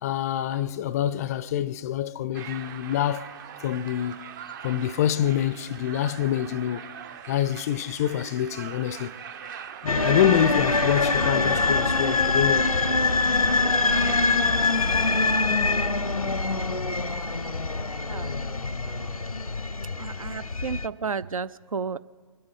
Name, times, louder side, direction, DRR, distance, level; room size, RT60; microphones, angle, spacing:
voice 1, 0.0-4.3 4.6-6.9 7.3-9.1 9.8-12.7, left 11 dB, 30° left, 0.4 m, -26 dB
sound 1, 2.3-15.4, right 7 dB, 35° right, 0.7 m, -40 dB
sound 2, 9.9-20.9, left 3 dB, 90° left, 0.6 m, -24 dB
voice 2, 20.0-22.0, right 5 dB, 75° right, 0.5 m, -32 dB
24.0 x 8.7 x 5.5 m
figure-of-eight pair, 125°, 18 cm